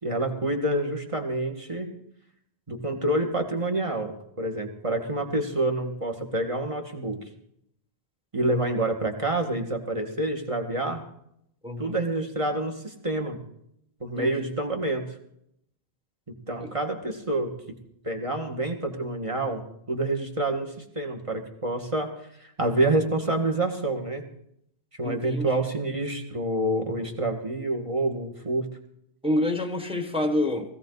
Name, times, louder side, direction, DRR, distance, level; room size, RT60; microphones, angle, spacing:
voice 1, 0.0-1.9 2.7-7.3 8.3-11.1 11.8-13.4 14.0-15.0 16.5-17.5 18.0-19.6 19.9-24.2 24.9-28.7, right 2 dB, 30° right, 3 dB, 1.8 m, -27 dB
voice 2, 11.6-12.0 14.2-14.4 16.6-16.7 25.0-25.7 29.2-30.8, left 1 dB, 5° right, 7 dB, 1.3 m, -28 dB
17.5 x 16.0 x 4.0 m, 0.73 s
omnidirectional pair, 1.1 m